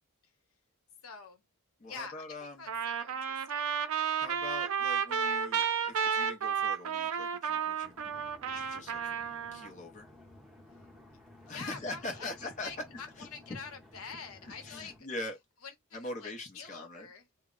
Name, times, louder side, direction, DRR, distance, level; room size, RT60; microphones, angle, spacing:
voice 1, 1.0-1.4 1.9-3.7 11.4-15.0 15.6-17.4, left 5 dB, 80° left, 0.8 m, -46 dB
voice 2, 1.8-2.7 4.2-8.1 8.5-9.0 9.5-10.1 11.5-12.7 13.2-13.3 14.4-15.4 15.9-17.1, left 2 dB, 35° left, 0.6 m, -42 dB
Trumpet, 2.7-9.7, right 7 dB, 80° right, 0.4 m, -32 dB
sound 1, 7.8-15.0, left 1 dB, ahead, 0.8 m, -56 dB
2.1 x 2.0 x 3.6 m
head